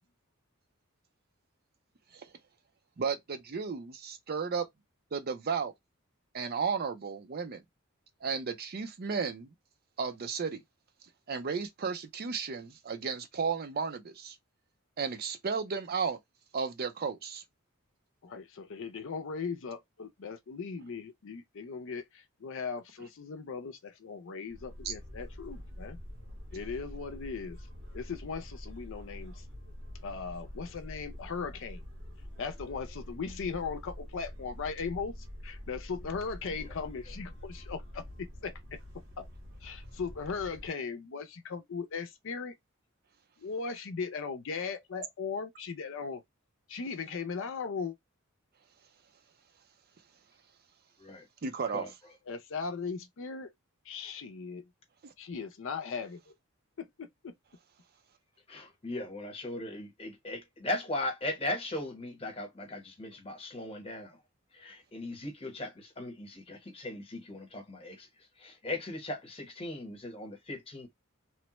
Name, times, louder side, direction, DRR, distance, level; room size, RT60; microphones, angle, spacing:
voice 1, 3.0-4.7 5.1-5.7 6.3-7.6 8.2-9.5 10.0-10.6 11.3-14.4 15.0-16.2 16.5-17.4 24.8-24.9 51.4-51.9 55.0-55.1, right 5 dB, 45° right, 0.5 m, -34 dB
voice 2, 18.2-26.0 26.5-27.6 27.9-29.4 30.0-31.8 32.4-38.8 39.2-39.3 39.6-42.5 43.4-46.2 46.7-48.0 52.3-53.5 53.9-54.6 55.2-56.3 56.8-57.3, left 5 dB, 60° left, 0.5 m, -38 dB
sound 1, 24.5-40.7, equal, 80° right, 1.4 m, -46 dB
voice 3, 58.5-64.2 64.5-68.1 68.4-70.9, left 2 dB, 25° left, 1.0 m, -38 dB
3.1 x 2.1 x 2.9 m
head